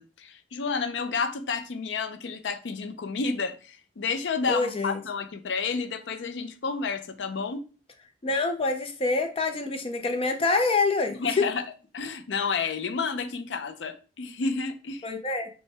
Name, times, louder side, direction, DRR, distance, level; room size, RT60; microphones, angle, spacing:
voice 1, 0.0-7.6 11.1-11.6 11.9-15.0, left 4 dB, 80° left, 0.5 m, -30 dB
voice 2, 4.5-5.0 8.2-11.5 15.0-15.5, left 3 dB, 30° left, 0.5 m, -26 dB
5.5 x 2.2 x 3.3 m
head